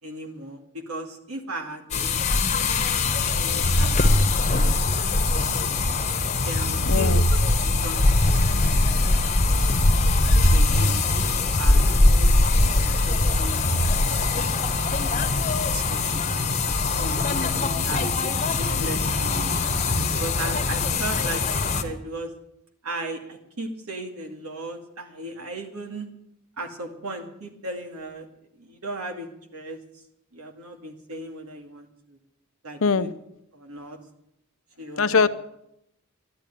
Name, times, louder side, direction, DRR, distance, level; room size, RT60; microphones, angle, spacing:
voice 1, 0.0-2.8 3.0-4.8 5.3-6.1 6.4-8.0 8.2-9.8 10.4-11.2 11.6-14.6 15.2-17.2 17.8-18.0 18.3-22.3 22.8-26.1 26.6-28.3 28.6-29.8 30.3-32.2 32.6-33.1 33.5-34.0 34.8-35.3, right 2 dB, 80° right, 3 dB, 2.3 m, -37 dB
sound 1, 1.9-21.8, left 2 dB, 30° left, 1.2 m, -21 dB
voice 2, 6.9-7.2 32.8-33.1 35.0-35.3, left 5 dB, 65° left, 12 dB, 0.7 m, -21 dB
12.0 x 10.5 x 9.2 m, 0.79 s
head